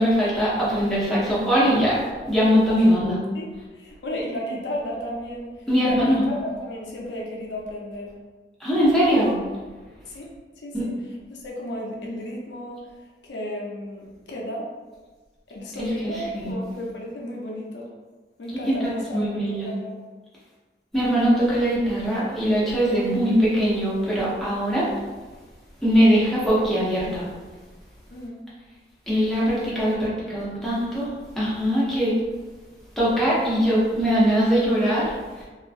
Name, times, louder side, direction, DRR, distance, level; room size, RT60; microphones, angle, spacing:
voice 1, 0.0-2.0 2.3-3.1 5.7-6.2 8.6-9.4 10.7-10.8 15.8-15.9 16.3-16.6 18.7-18.8 19.1-19.7 20.9-24.9 25.8-27.2 29.1-31.1 31.4-32.2 33.0-35.1, equal, ahead, -9 dB, 0.7 m, -21 dB
voice 2, 3.7-8.1 10.1-10.9 11.3-12.9 13.2-14.7 15.5-17.9 18.4-19.9 28.1-28.4 29.8-30.4, left 1 dB, 75° left, -2 dB, 0.5 m, -33 dB
2.9 x 2.3 x 2.5 m, 1.3 s
head